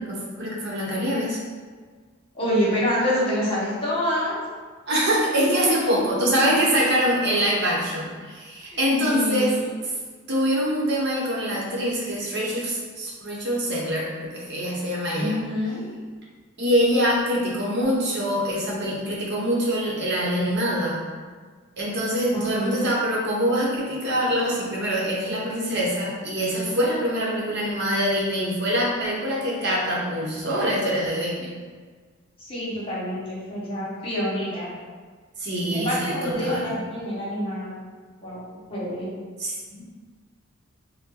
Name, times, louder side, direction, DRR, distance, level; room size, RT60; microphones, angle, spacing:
voice 1, 0.0-1.4 4.9-9.5 10.3-15.4 16.6-21.0 21.8-31.5 35.4-36.7 39.4-39.8, equal, 55° right, -4 dB, 0.9 m, -24 dB
voice 2, 2.3-4.4 5.6-5.9 6.5-6.6 8.6-9.7 15.1-15.8 22.3-22.8 32.4-34.7 35.7-37.8 38.2-38.4 38.7-39.1, equal, 30° left, -7 dB, 1.3 m, -27 dB
4.3 x 2.1 x 3.7 m, 1.5 s
head